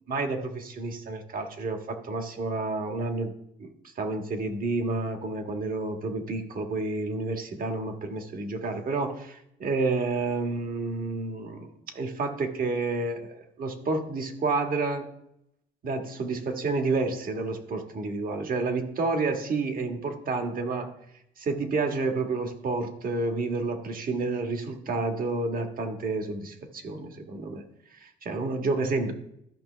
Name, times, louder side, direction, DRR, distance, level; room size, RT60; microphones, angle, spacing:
voice 1, 0.1-3.3 3.6-3.7 4.0-15.0 15.8-20.9 21.4-27.6 28.0-29.1, right 3 dB, 55° right, 5 dB, 1.6 m, -30 dB
13.5 x 5.7 x 3.3 m, 0.77 s
cardioid pair, 85°, 18 cm